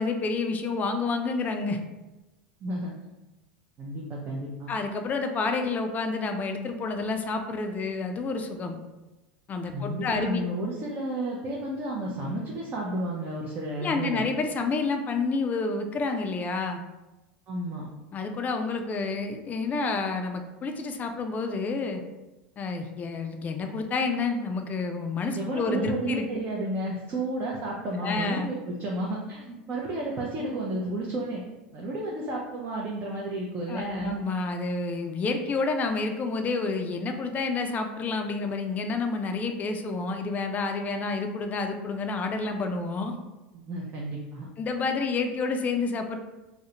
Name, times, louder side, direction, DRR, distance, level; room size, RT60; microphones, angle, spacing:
voice 1, 0.0-1.8 4.7-8.8 9.5-10.4 13.8-16.8 18.1-22.0 22.6-26.4 28.0-28.5 33.7-43.1 44.6-46.2, left 4 dB, 30° left, 6 dB, 0.3 m, -29 dB
voice 2, 2.6-2.9 3.8-4.7 9.7-14.3 17.5-17.9 25.3-31.4 31.7-34.2 43.5-44.5, right 1 dB, 35° right, -3 dB, 0.5 m, -32 dB
2.4 x 2.1 x 2.8 m, 1.1 s
hypercardioid pair, 100°, 6 cm